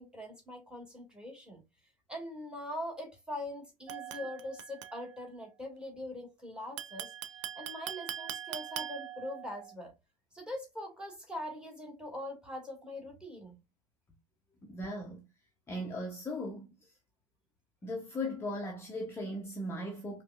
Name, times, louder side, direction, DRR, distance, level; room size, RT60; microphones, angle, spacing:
voice 1, 0.0-1.6 2.1-7.1 7.5-9.9 10.3-13.6, left 1 dB, 5° right, 1.5 m, -42 dB
sound 1, 3.9-5.3 6.8-9.7, right 10 dB, 60° right, 0.5 m, -42 dB
voice 2, 14.6-15.3 15.7-16.7 17.8-20.2, left 1 dB, 15° left, 0.7 m, -38 dB
5.1 x 2.2 x 2.4 m
figure-of-eight pair, 75°, 18 cm